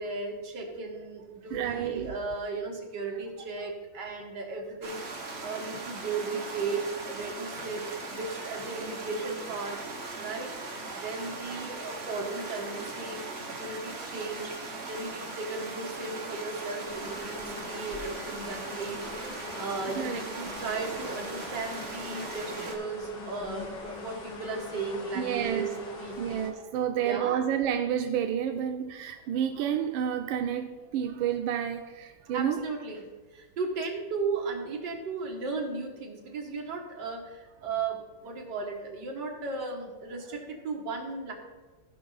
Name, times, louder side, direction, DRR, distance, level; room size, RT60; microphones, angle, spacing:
voice 1, 0.0-9.8 10.2-10.5 10.9-13.3 13.6-19.1 19.6-26.4 26.9-27.4 32.3-33.1 33.3-41.3, right 4 dB, 60° right, 2.1 m, -36 dB
voice 2, 1.5-2.2 10.8-11.1 11.5-11.6 20.0-20.2 25.1-25.7 26.2-32.6, right 9 dB, 90° right, 1.4 m, -30 dB
sound 1, 4.8-22.8, right 3 dB, 40° right, 1.2 m, -39 dB
sound 2, 16.8-26.5, left 3 dB, 65° left, 2.1 m, -42 dB
15.5 x 5.4 x 4.0 m
omnidirectional pair, 2.1 m